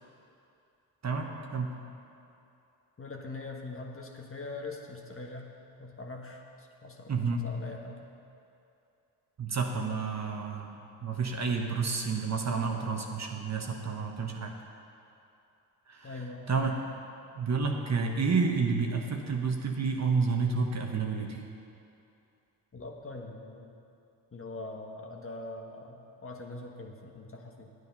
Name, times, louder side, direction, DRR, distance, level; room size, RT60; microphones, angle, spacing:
voice 1, 1.0-1.7 7.1-7.4 9.4-14.5 15.9-16.7 17.3-21.4, right 4 dB, 35° right, 2 dB, 1.4 m, -30 dB
voice 2, 3.0-5.5 5.8-8.0 16.0-16.5 22.7-23.7 24.3-27.7, left 2 dB, 30° left, 1 dB, 1.5 m, -42 dB
9.6 x 9.4 x 5.5 m, 2.7 s
supercardioid pair, 60°, 46 cm